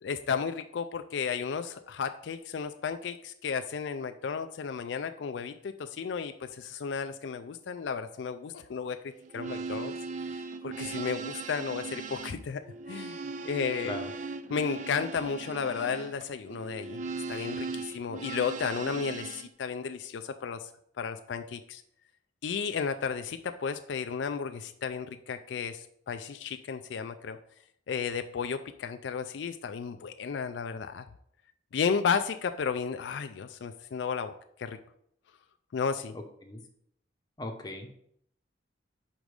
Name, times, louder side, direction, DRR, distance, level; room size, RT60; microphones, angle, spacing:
voice 1, 0.0-9.0 9.3-9.9 10.3-12.6 12.9-14.0 14.5-17.0 17.3-20.6 21.0-21.8 22.4-27.4 27.9-31.0 31.7-34.3 34.6-34.8 35.7-36.1, left 6 dB, 75° left, 8 dB, 0.4 m, -33 dB
sound 1, 9.2-19.5, right 4 dB, 40° right, 0.4 m, -38 dB
voice 2, 37.4-37.9, left 1 dB, 20° left, 3 dB, 0.8 m, -38 dB
5.1 x 5.1 x 4.8 m, 0.70 s
head